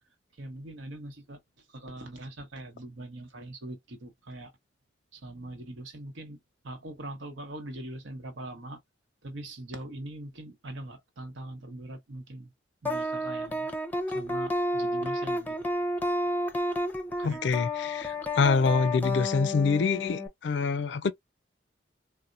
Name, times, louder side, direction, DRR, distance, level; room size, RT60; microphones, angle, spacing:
voice 1, 0.4-1.4 1.7-4.5 5.1-6.4 6.6-8.8 9.2-12.5 12.8-13.7 14.1-15.6 17.2-17.4, right 1 dB, 85° right, 1.0 m, -42 dB
sound 1, 12.9-20.3, left 1 dB, 10° left, 0.5 m, -31 dB
voice 2, 17.2-21.1, left 4 dB, 65° left, 0.4 m, -26 dB
4.1 x 2.1 x 2.4 m
head